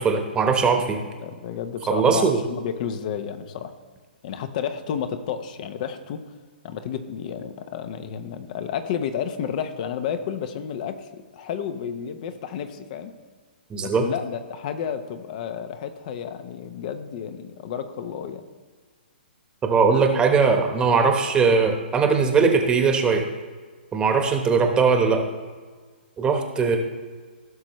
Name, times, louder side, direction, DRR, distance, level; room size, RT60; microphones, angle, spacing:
voice 1, 0.0-1.0 1.9-2.4 13.7-14.0 19.6-23.3 23.9-25.2 26.2-26.8, right 5 dB, 15° right, 4 dB, 1.1 m, -20 dB
voice 2, 0.7-3.8 4.2-6.2 6.6-13.1 13.8-18.5, left 8 dB, 45° left, 10 dB, 0.9 m, -31 dB
16.0 x 6.3 x 3.1 m, 1.5 s
hypercardioid pair, 130°, 6 cm